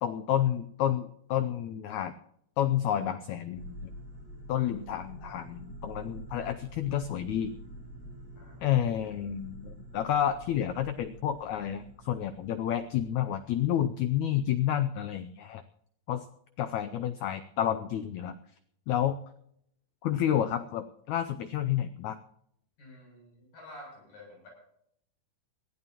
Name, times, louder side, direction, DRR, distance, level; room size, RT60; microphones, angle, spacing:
voice 1, 0.0-2.1 2.6-3.9 4.5-7.5 8.6-15.6 16.1-16.2 16.6-18.3 18.9-19.2 20.0-22.2, left 10 dB, 85° left, 10 dB, 1.6 m, -30 dB
sound 1, 3.5-14.0, right 1 dB, 30° right, 7.3 m, -47 dB
voice 2, 8.4-8.8 22.8-24.5, left 1 dB, 70° left, -2 dB, 9.5 m, -50 dB
21.5 x 15.0 x 3.0 m, 0.72 s
omnidirectional pair, 4.2 m